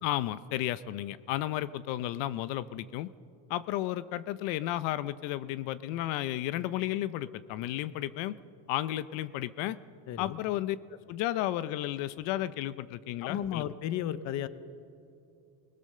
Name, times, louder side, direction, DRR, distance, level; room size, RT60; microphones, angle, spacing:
voice 1, 0.0-3.1 3.5-8.3 8.7-9.8 10.2-10.8 11.1-13.7, left 14 dB, 75° left, 16 dB, 0.8 m, -33 dB
voice 2, 10.1-10.4 13.2-14.5, left 11 dB, 40° left, 14 dB, 0.7 m, -33 dB
26.5 x 20.5 x 6.6 m, 2.5 s
cardioid pair, 180°, 44 cm